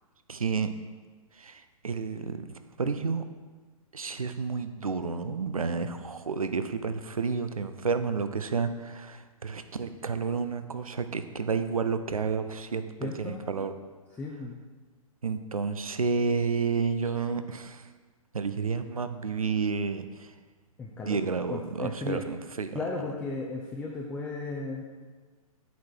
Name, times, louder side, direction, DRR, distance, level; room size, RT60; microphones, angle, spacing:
voice 1, 0.3-0.7 1.4-3.2 3.9-13.7 15.2-17.9 18.3-20.3 20.9-22.8, right 5 dB, 70° right, 9 dB, 0.7 m, -31 dB
voice 2, 13.0-13.6 14.2-14.6 20.8-21.2 21.5-22.2 22.7-24.8, left 3 dB, 5° left, -2 dB, 0.5 m, -35 dB
8.2 x 6.5 x 4.5 m, 1.4 s
figure-of-eight pair, 120°, 18 cm